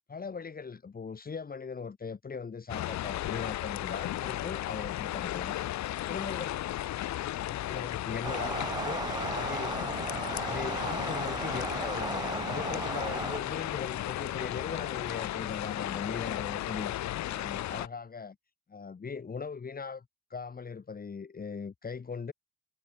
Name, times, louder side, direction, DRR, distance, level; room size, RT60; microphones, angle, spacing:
voice 1, 0.1-5.6 6.1-6.8 7.2-9.0 9.3-9.8 10.1-18.4 18.7-20.0 20.3-22.3, left 5 dB, 30° left, 2.1 m, -39 dB
sound 1, 2.7-17.9, left 14 dB, 70° left, 1.4 m, -35 dB
sound 2, 8.2-13.4, right 4 dB, 15° right, 0.4 m, -36 dB
cardioid pair, 95°, 29 cm